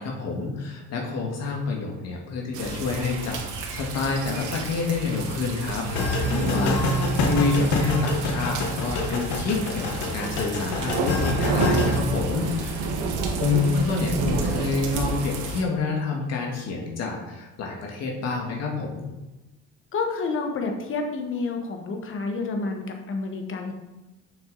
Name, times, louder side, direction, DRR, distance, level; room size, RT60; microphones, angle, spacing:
voice 1, 0.0-13.0 13.3-19.1, left 4 dB, 60° left, 0 dB, 1.7 m, -28 dB
sound 1, 2.5-15.6, right 3 dB, 80° right, 1.3 m, -30 dB
sound 2, 5.8-12.0, left 1 dB, 90° left, 1.4 m, -26 dB
voice 2, 6.2-7.0 19.9-23.7, left 3 dB, 45° left, 4 dB, 1.4 m, -29 dB
7.2 x 6.1 x 4.0 m, 1.0 s
cardioid pair, 130°, 29 cm